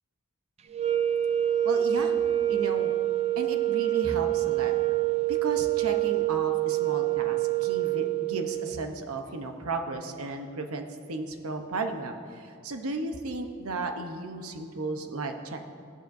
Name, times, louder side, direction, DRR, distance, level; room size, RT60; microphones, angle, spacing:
sound 1, 0.7-8.9, right 13 dB, 30° right, 0.4 m, -26 dB
voice 1, 1.6-2.2 2.5-2.9 3.4-4.7 5.3-15.7, right 3 dB, 75° right, 5 dB, 0.9 m, -34 dB
16.0 x 11.5 x 2.6 m, 2.3 s
head